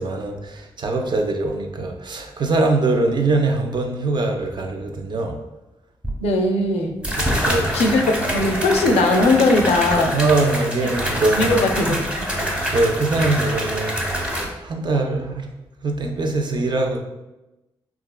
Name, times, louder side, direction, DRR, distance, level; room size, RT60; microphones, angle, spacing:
voice 1, 0.0-5.4 7.2-7.8 10.1-11.6 11.9-12.0 12.7-15.5 15.8-17.0, right 2 dB, 45° right, 3 dB, 0.5 m, -22 dB
sound 1, 6.0-6.1 7.0-14.4, equal, 10° right, 0.9 m, -25 dB
voice 2, 6.2-7.0 7.7-10.2 11.4-12.3, left 2 dB, 75° left, 4 dB, 0.4 m, -19 dB
3.3 x 2.3 x 2.2 m, 0.99 s
supercardioid pair, 45°, 11 cm